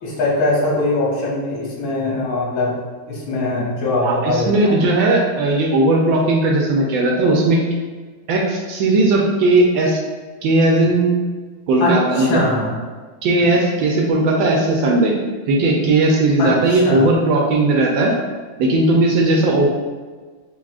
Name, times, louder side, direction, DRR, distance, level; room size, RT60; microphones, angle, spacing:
voice 1, 0.0-2.7 3.1-4.8 11.8-12.8 16.4-17.1, left 2 dB, 70° left, -4 dB, 1.8 m, -21 dB
voice 2, 4.0-7.6 8.3-10.0 10.4-11.1 11.7-12.4 13.2-15.1 15.5-18.1 18.6-19.7, right 2 dB, 75° right, -1 dB, 1.3 m, -17 dB
5.3 x 2.9 x 2.4 m, 1.4 s
omnidirectional pair, 2.3 m